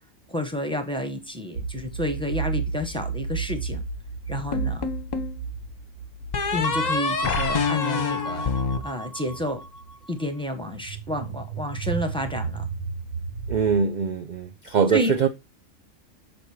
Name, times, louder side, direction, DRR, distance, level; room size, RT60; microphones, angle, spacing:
voice 1, 0.3-3.8 4.3-4.9 6.5-9.6 10.1-12.7 14.9-15.1, left 1 dB, 5° left, 0.8 m, -30 dB
sound 1, 1.6-8.7 9.3-9.5 10.7-13.7, right 5 dB, 80° right, 1.4 m, -33 dB
sound 2, 4.5-5.4 6.3-9.7, left 4 dB, 40° left, 0.8 m, -26 dB
voice 2, 13.5-15.3, right 6 dB, 65° right, 0.4 m, -23 dB
6.4 x 4.4 x 4.8 m
omnidirectional pair, 1.4 m